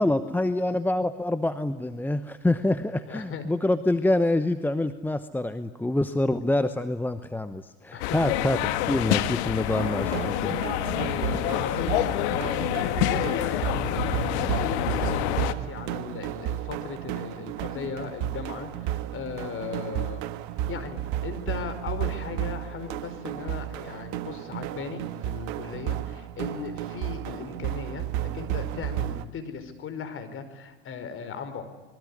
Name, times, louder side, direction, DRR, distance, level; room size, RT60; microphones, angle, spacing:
voice 1, 0.0-8.6 8.9-10.6, left 1 dB, 5° left, 11 dB, 1.0 m, -26 dB
voice 2, 3.1-3.4 7.9-8.2 10.9-12.0 12.3-20.2 20.7-31.7, left 6 dB, 35° left, 9 dB, 4.9 m, -37 dB
sound 1, 8.0-15.5, left 13 dB, 65° left, 1.8 m, -27 dB
sound 2, 9.8-29.2, right 12 dB, 55° right, 1.6 m, -33 dB
26.0 x 22.0 x 9.8 m, 1.2 s
hypercardioid pair, 100°, 36 cm